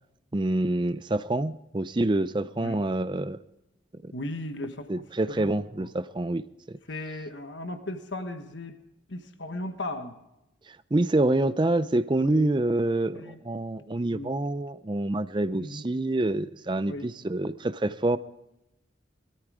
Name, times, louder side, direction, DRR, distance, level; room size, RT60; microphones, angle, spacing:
voice 1, 0.3-3.4 4.0-4.1 4.9-6.5 10.7-18.2, right 2 dB, 25° right, 14 dB, 0.5 m, -27 dB
voice 2, 4.1-4.9 5.3-5.5 5.8-5.9 6.9-8.8 9.1-10.1 12.2-12.5 13.2-13.4 14.1-14.3 15.6-15.8 16.9-17.0, left 1 dB, 75° left, 8 dB, 1.4 m, -36 dB
21.5 x 13.5 x 4.9 m, 0.89 s
head